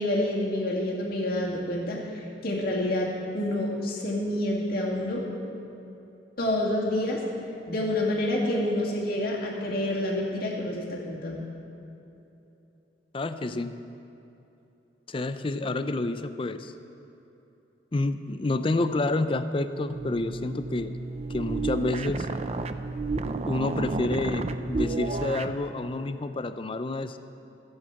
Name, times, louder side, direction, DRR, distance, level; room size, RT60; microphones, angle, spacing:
voice 1, 0.0-2.0 2.4-5.3 6.4-7.2 7.7-11.5, left 1 dB, 55° left, -3 dB, 2.4 m, -28 dB
voice 2, 13.1-13.7 15.1-16.7 17.9-20.9 21.3-22.3 23.5-27.2, left 2 dB, 30° left, 11 dB, 0.5 m, -29 dB
sound 1, 19.9-25.6, right 3 dB, 35° right, 0.5 m, -31 dB
15.0 x 7.9 x 6.9 m, 2.9 s
head